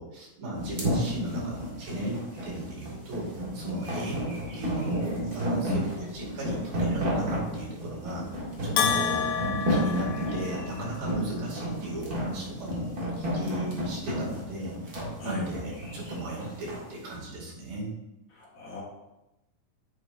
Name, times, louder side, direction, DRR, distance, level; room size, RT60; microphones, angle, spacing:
voice 1, 0.0-9.3 9.7-17.9, right 1 dB, 80° right, -4 dB, 4.1 m, -36 dB
sound 1, 0.6-16.8, equal, 35° right, 1.7 m, -32 dB
Bell, 8.8-10.9, left 7 dB, 85° left, 2.5 m, -29 dB
voice 2, 18.3-18.8, left 2 dB, 50° left, -3 dB, 1.6 m, -34 dB
9.3 x 7.2 x 2.6 m, 0.93 s
omnidirectional pair, 3.9 m